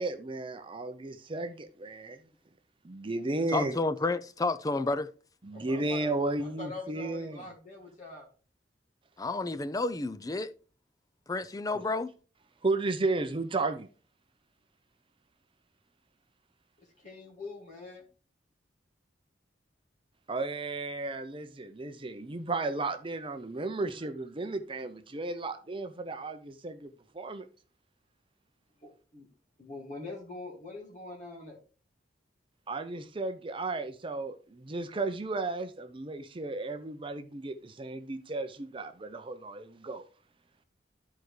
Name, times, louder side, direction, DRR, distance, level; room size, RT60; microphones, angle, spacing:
voice 1, 0.0-2.2 2.8-3.8 5.4-7.5 11.7-11.9 12.6-13.9 20.3-27.5 32.7-40.0, right 2 dB, 30° right, 0.6 m, -34 dB
voice 2, 3.5-5.1 9.2-10.5 11.3-12.1, left 3 dB, 20° left, 0.4 m, -30 dB
voice 3, 5.5-8.3 17.0-18.0 28.8-29.3 29.6-31.6, left 2 dB, 45° left, 2.1 m, -44 dB
13.0 x 4.7 x 3.2 m
head